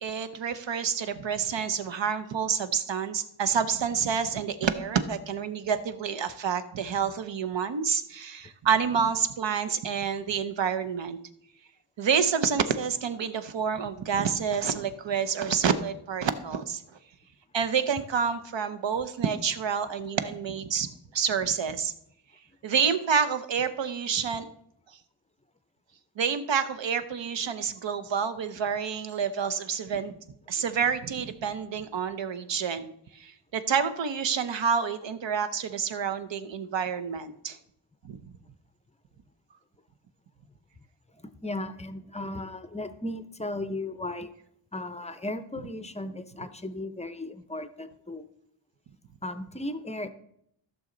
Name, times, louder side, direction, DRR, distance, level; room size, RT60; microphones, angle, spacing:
voice 1, 0.0-11.2 12.0-16.8 17.5-21.9 22.6-24.5 26.2-30.1 30.5-37.6 38.0-38.2, right 6 dB, 65° right, 10 dB, 0.8 m, -28 dB
voice 2, 41.2-44.3 44.7-48.3 49.2-50.1, left 1 dB, 15° left, 11 dB, 0.5 m, -36 dB
14.5 x 6.4 x 3.8 m, 0.73 s
wide cardioid pair, 150°, 47 cm